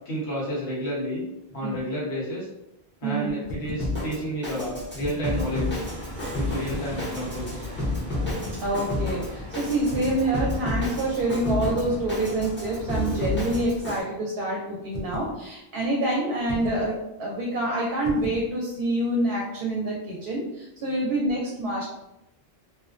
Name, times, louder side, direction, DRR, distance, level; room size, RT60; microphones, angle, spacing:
voice 1, 0.0-1.2 1.5-2.5 3.0-5.8 6.3-7.6, equal, 75° left, -6 dB, 1.2 m, -30 dB
sound 1, 3.4-3.9 4.8-5.5 6.7-7.1 8.2-8.7 9.9-10.3 11.6-12.1 13.3-13.7 14.9-15.4 16.5-16.9 18.0-18.5, left 1 dB, 55° left, 0.6 m, -35 dB
Drum kit, 3.8-14.0, left 1 dB, 15° left, 0.6 m, -31 dB
sound 2, 5.3-13.7, left 1 dB, 30° right, 0.5 m, -39 dB
voice 2, 8.6-21.9, right 1 dB, 65° right, -2 dB, 0.7 m, -27 dB
2.6 x 2.1 x 2.4 m, 0.89 s
omnidirectional pair, 1.1 m